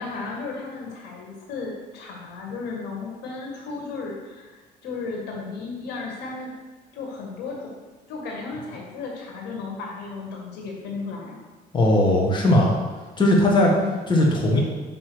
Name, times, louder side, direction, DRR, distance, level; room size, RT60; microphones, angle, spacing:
voice 1, 0.0-4.5 4.8-6.6 6.9-7.8 8.1-11.4 13.5-14.2, left 4 dB, 85° left, -1 dB, 1.7 m, -34 dB
voice 2, 11.7-12.7 13.2-13.7 14.1-14.6, left 1 dB, 25° left, -2 dB, 1.7 m, -18 dB
5.5 x 5.0 x 6.2 m, 1.3 s
cardioid pair, 110°, 17 cm